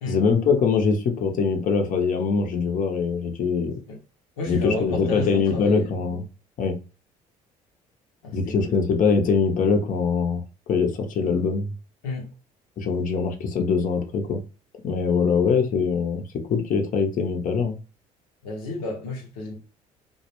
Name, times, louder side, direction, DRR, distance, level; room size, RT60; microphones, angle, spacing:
voice 1, 0.1-3.7 4.5-6.3 6.6-6.8 8.3-10.4 10.7-11.7 12.8-14.4 14.8-16.2 16.5-17.8, left 5 dB, 50° left, 0.6 m, -23 dB
voice 2, 4.4-5.9 8.2-8.8 12.0-12.3 18.4-19.5, left 2 dB, 85° left, 0.7 m, -31 dB
2.2 x 2.1 x 2.9 m
hypercardioid pair, 60°, 18 cm